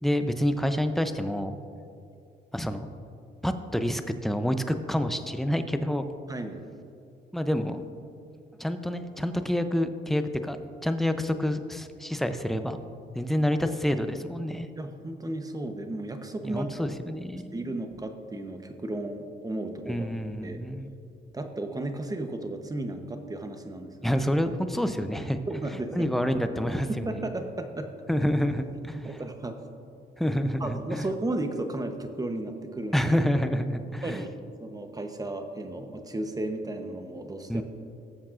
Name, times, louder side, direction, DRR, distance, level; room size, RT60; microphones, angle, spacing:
voice 1, 0.0-1.6 2.5-2.9 3.4-6.1 7.3-7.8 8.6-10.6 10.8-12.8 13.1-14.7 16.4-17.6 19.9-20.9 24.0-25.4 25.9-27.1 28.1-29.2 30.2-31.1 32.9-34.2 37.5-37.6, equal, ahead, 8 dB, 0.6 m, -28 dB
voice 2, 6.3-6.6 14.7-16.9 17.5-20.1 20.4-20.6 21.3-24.2 24.9-25.0 25.5-26.1 26.9-27.9 29.0-29.6 30.6-33.1 34.0-37.6, right 2 dB, 20° right, 6 dB, 0.9 m, -34 dB
18.0 x 7.3 x 2.5 m, 2.5 s
cardioid pair, 90°, 20 cm